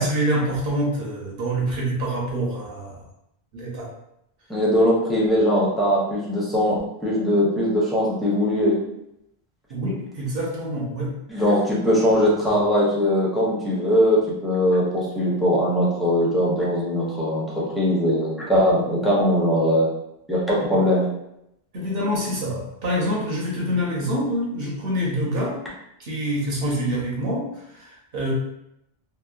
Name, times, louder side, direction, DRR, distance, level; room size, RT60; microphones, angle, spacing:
voice 1, 0.0-3.0 3.5-3.9 9.7-11.2 21.7-25.6 26.0-28.3, equal, 70° right, -3 dB, 0.9 m, -26 dB
voice 2, 4.5-8.8 11.3-19.9 20.3-21.1, equal, ahead, -7 dB, 0.6 m, -20 dB
2.8 x 2.0 x 2.3 m, 0.82 s
omnidirectional pair, 1.0 m